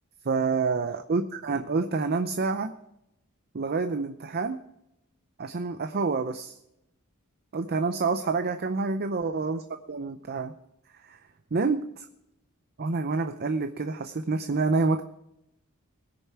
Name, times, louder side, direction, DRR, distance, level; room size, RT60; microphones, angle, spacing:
voice 1, 0.2-2.7 3.5-4.6 5.4-6.6 7.5-9.6 9.9-10.5 11.0-11.2 11.5-12.1 12.8-15.0, right 4 dB, 45° right, 8 dB, 0.6 m, -27 dB
19.5 x 6.7 x 4.7 m, 0.82 s
head